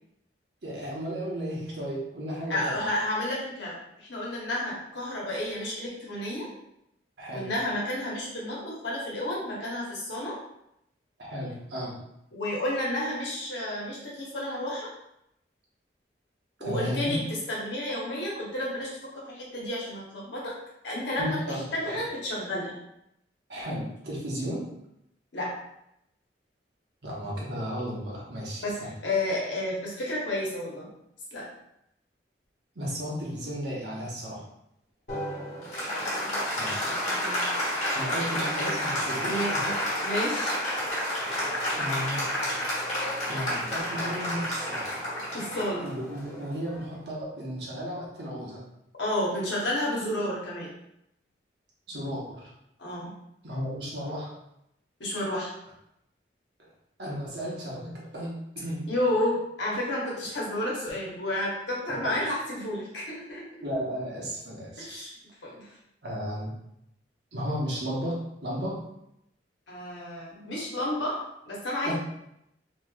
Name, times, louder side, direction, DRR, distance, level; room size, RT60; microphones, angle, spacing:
voice 1, 0.6-2.8 7.2-7.5 11.2-12.0 16.6-17.2 21.2-22.0 23.5-24.7 27.0-28.9 32.7-34.4 36.5-36.9 37.9-39.7 41.8-42.3 43.3-44.9 45.8-48.6 51.9-52.5 53.4-54.3 57.0-58.9 62.0-62.2 63.6-64.9 66.0-66.5 67.3-68.8 71.8-71.9, equal, 70° right, -4 dB, 1.0 m, -34 dB
voice 2, 2.5-6.5 7.3-10.3 12.3-14.9 16.6-20.5 20.8-22.7 25.3-25.5 28.6-30.9 31.3-31.5 35.9-37.4 39.2-39.8 40.0-40.6 45.3-45.9 49.0-50.7 52.8-53.1 55.0-55.5 58.9-63.5 64.8-65.1 65.4-65.7 69.7-71.2 71.5-71.9, left 1 dB, 85° left, -4 dB, 1.1 m, -31 dB
Applause, 35.1-47.0, equal, 40° left, 1.2 m, -30 dB
3.1 x 2.9 x 2.3 m, 0.81 s
head